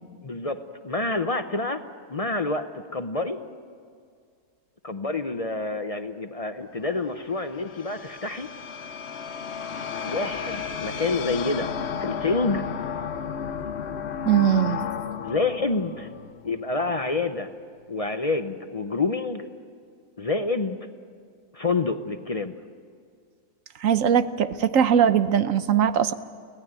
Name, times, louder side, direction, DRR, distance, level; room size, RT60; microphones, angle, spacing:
voice 1, 0.2-0.6 0.8-1.8 2.1-3.4 4.8-8.5 10.0-11.7 12.0-12.7 15.2-16.1 16.4-17.5 17.9-19.5 20.2-20.8 21.5-22.5, left 3 dB, 35° left, 8 dB, 0.6 m, -27 dB
sound 1, 6.8-17.1, left 7 dB, 50° left, 1.1 m, -33 dB
voice 2, 14.3-14.8 23.8-26.1, right 8 dB, 65° right, 12 dB, 1.1 m, -20 dB
24.0 x 17.5 x 9.0 m, 2.1 s
omnidirectional pair, 1.6 m